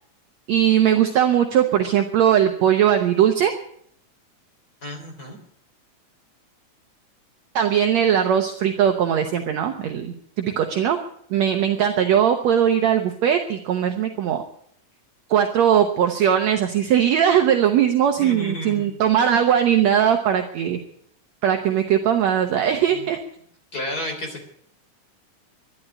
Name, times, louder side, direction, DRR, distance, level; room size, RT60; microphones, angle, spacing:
voice 1, 0.5-3.5 7.6-11.0 11.3-14.4 15.3-20.8 21.4-23.2, right 9 dB, 65° right, 6 dB, 2.0 m, -19 dB
voice 2, 4.8-5.4 18.2-19.0 22.9-23.0 23.7-24.4, left 1 dB, 30° left, 3 dB, 3.7 m, -32 dB
12.0 x 11.5 x 9.9 m, 0.67 s
omnidirectional pair, 3.8 m